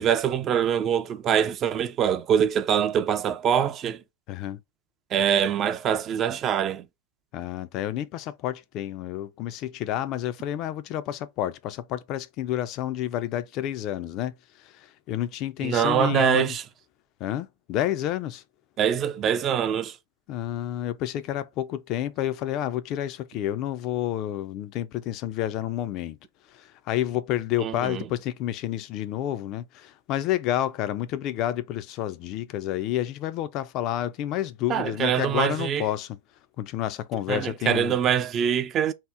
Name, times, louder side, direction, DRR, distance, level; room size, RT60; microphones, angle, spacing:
voice 1, 0.0-4.0 5.1-6.8 15.6-16.6 18.8-19.9 27.6-28.0 34.7-35.8 37.3-38.9, right 8 dB, 35° right, 0.3 m, -24 dB
voice 2, 4.3-4.6 7.3-16.6 17.2-18.4 20.3-26.2 26.5-36.2 36.6-38.0, left 12 dB, 45° left, 0.3 m, -30 dB
2.8 x 2.0 x 3.3 m
hypercardioid pair, 110°, 0 cm